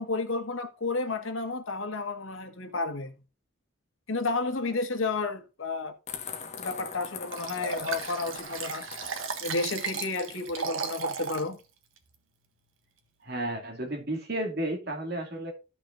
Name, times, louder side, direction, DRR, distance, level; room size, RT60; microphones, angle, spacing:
voice 1, 0.0-3.1 4.1-6.0 6.6-8.8 9.4-11.6, left 3 dB, 85° left, 1.6 m, -31 dB
sound 1, 6.1-10.5, left 6 dB, 35° left, 1.3 m, -42 dB
Liquid, 7.3-11.5 12.0-12.1, right 5 dB, 90° right, 1.5 m, -35 dB
voice 2, 13.2-15.5, right 1 dB, 55° right, 2.5 m, -32 dB
14.0 x 6.2 x 2.5 m
head